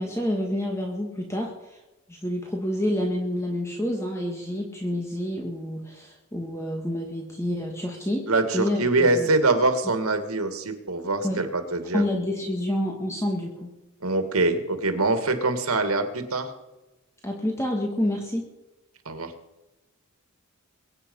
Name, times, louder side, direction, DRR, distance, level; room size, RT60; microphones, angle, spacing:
voice 1, 0.0-1.8 2.1-8.3 8.5-9.3 11.2-11.4 11.9-13.7 17.2-18.5, left 1 dB, 15° left, 1 dB, 1.8 m, -28 dB
voice 2, 8.3-12.0 14.0-16.5 19.1-19.3, right 2 dB, 85° right, 8 dB, 2.2 m, -24 dB
23.0 x 9.1 x 5.5 m, 1.0 s
head